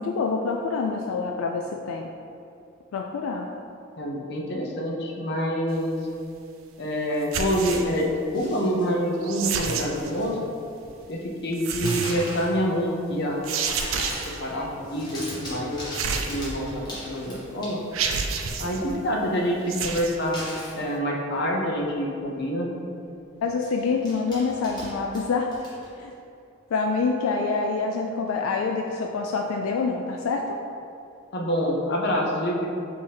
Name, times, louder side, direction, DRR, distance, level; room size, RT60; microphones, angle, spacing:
voice 1, 0.0-2.1 2.9-3.5 18.8-19.0 23.4-25.5 26.0-26.1 26.7-30.6, left 4 dB, 90° left, 2 dB, 0.3 m, -26 dB
voice 2, 4.0-6.0 6.8-10.4 11.1-13.5 13.9-14.1 14.4-15.8 16.3-17.8 18.6-20.4 20.7-22.7 31.3-32.7, equal, 55° left, -1 dB, 0.7 m, -26 dB
sound 1, 7.2-8.0 9.2-10.1 11.5-12.4 13.4-14.4 15.9-16.8 17.4-17.5 17.9-18.8 19.6-20.2, right 5 dB, 75° right, 0.4 m, -29 dB
sound 2, 8.3-8.9 9.4-10.3 10.6-11.2 11.8-12.6 13.0-13.5 13.8-14.4 14.7-18.1 20.3-20.8 21.8-21.9 22.2-22.4 23.4-26.1, equal, 20° left, 1.2 m, -39 dB
5.5 x 2.8 x 3.3 m, 2.6 s
head